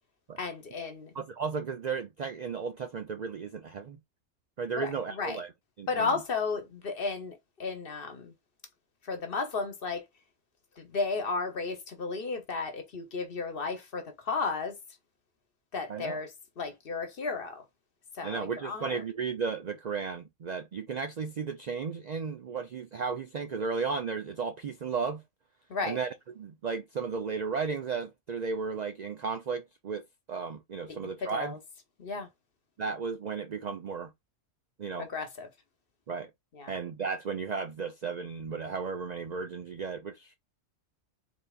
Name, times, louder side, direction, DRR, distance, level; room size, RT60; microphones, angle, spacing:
voice 1, 0.4-1.1 4.8-5.4 5.9-8.3 9.0-10.0 10.8-14.8 15.7-17.6 18.1-19.0 25.7-26.0 30.9-31.6 32.0-32.3 35.0-35.5 36.5-36.7, left 4 dB, 50° left, 1.1 m, -34 dB
voice 2, 1.1-4.0 4.6-5.5 5.8-6.1 15.9-16.2 18.2-25.2 25.9-26.1 26.4-30.0 30.3-31.6 32.8-34.1 34.8-35.1 36.1-36.3 36.7-40.3, right 5 dB, 75° right, 0.4 m, -34 dB
4.0 x 3.3 x 2.4 m
omnidirectional pair, 1.3 m